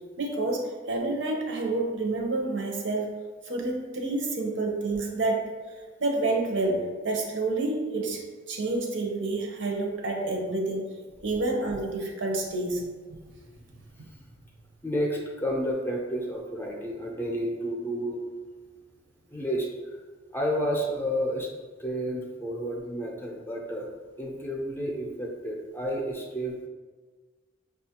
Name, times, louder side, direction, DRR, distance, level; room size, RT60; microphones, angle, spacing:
voice 1, 0.2-3.2 3.4-5.5 6.0-10.9 11.2-12.9 14.0-14.1 18.6-18.7, right 2 dB, 75° right, 1 dB, 0.7 m, -29 dB
voice 2, 13.3-14.3 14.8-18.2 19.3-20.0 20.3-21.5 21.8-23.9 24.2-26.6, equal, 10° left, -2 dB, 0.5 m, -31 dB
5.9 x 2.4 x 2.8 m, 1.4 s
head